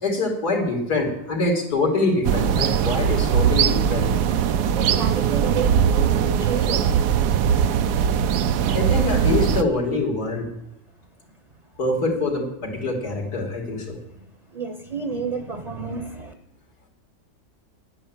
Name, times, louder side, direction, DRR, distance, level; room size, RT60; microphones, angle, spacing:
voice 1, 0.0-4.1 8.7-10.5 11.8-14.0, left 2 dB, 85° left, 0 dB, 3.5 m, -24 dB
sound 1, 2.2-9.6, right 8 dB, 85° right, 1.3 m, -20 dB
voice 2, 4.4-7.0 14.0-16.3, right 5 dB, 30° right, 7 dB, 0.8 m, -31 dB
10.5 x 9.8 x 8.8 m, 0.84 s
omnidirectional pair, 1.7 m